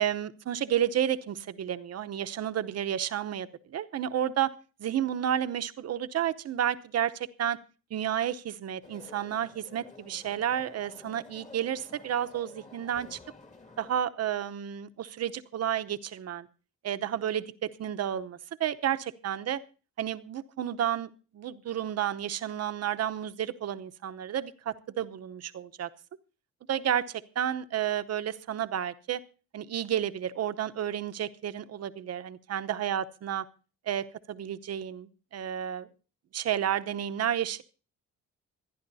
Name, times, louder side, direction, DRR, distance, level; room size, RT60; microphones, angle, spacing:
voice 1, 0.0-4.5 4.8-7.6 7.9-13.2 13.8-16.5 16.8-19.6 20.0-25.9 26.7-29.2 29.5-33.4 33.9-35.9 36.3-37.6, right 10 dB, 55° right, 11 dB, 0.9 m, -31 dB
sound 1, 8.8-13.9, left 3 dB, 25° left, 2.2 m, -52 dB
26.5 x 10.5 x 2.7 m, 0.36 s
cardioid pair, 90°, 30 cm